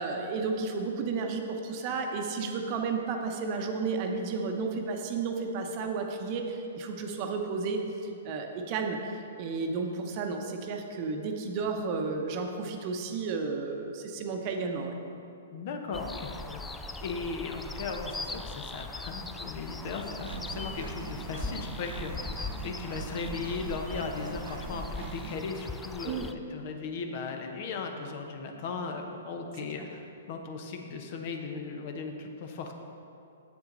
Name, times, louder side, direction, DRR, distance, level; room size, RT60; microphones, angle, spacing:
voice 1, 0.0-9.1 9.4-15.0 26.0-26.3 29.8-29.9, right 4 dB, 40° right, 4 dB, 0.8 m, -32 dB
voice 2, 15.5-22.3 22.6-26.2 26.5-32.7, left 4 dB, 50° left, 4 dB, 0.8 m, -37 dB
sound 1, 15.9-26.3, left 3 dB, 10° left, 0.3 m, -40 dB
Engine, 20.2-25.5, right 5 dB, 70° right, 0.5 m, -42 dB
7.7 x 7.2 x 3.9 m, 2.7 s
hypercardioid pair, 120°, 0 cm